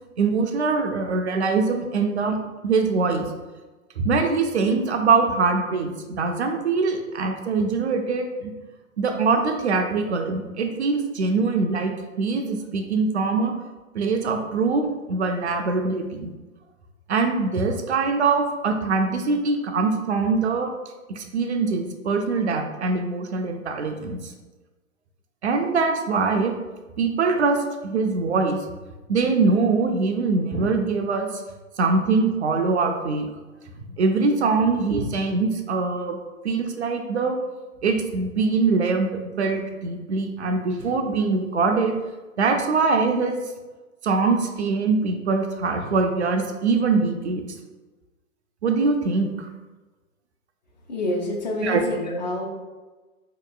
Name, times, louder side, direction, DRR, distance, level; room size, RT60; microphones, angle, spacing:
voice 1, 0.2-2.4 2.6-3.3 4.0-8.5 9.0-11.9 12.2-13.5 13.9-16.3 17.1-20.7 21.1-24.3 25.4-26.5 27.0-28.6 29.1-31.4 31.8-33.3 34.0-36.2 36.4-37.4 37.8-42.0 42.4-43.4 44.0-47.4 48.6-49.5 51.6-51.8, right 4 dB, 55° right, 5 dB, 0.4 m, -23 dB
voice 2, 50.9-52.5, left 1 dB, 35° left, -1 dB, 0.4 m, -27 dB
4.1 x 2.8 x 2.3 m, 1.2 s
figure-of-eight pair, 115°, 43 cm